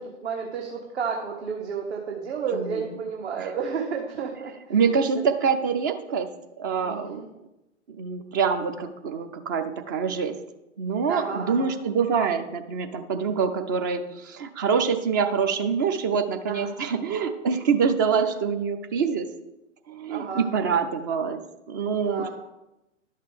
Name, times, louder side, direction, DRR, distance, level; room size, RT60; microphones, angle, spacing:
voice 1, 0.2-5.1 6.8-7.3 11.1-11.8 16.4-16.7 18.2-18.3 20.1-20.5 22.0-22.3, right 6 dB, 60° right, 1 dB, 1.5 m, -32 dB
voice 2, 4.7-6.3 6.6-7.2 8.0-10.3 10.8-19.3 19.9-21.4 21.7-22.3, right 6 dB, 15° right, 8 dB, 0.4 m, -25 dB
11.5 x 6.6 x 5.0 m, 0.93 s
figure-of-eight pair, 110°, 38 cm